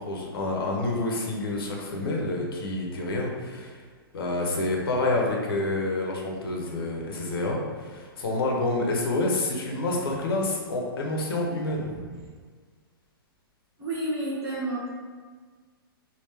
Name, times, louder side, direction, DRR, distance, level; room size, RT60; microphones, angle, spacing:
voice 1, 0.0-3.8 4.1-11.9, left 2 dB, 70° left, -1 dB, 0.9 m, -28 dB
voice 2, 11.8-12.3 13.8-14.9, right 1 dB, 20° right, -9 dB, 0.8 m, -31 dB
3.5 x 2.4 x 3.3 m, 1.5 s
hypercardioid pair, 145°, 13 cm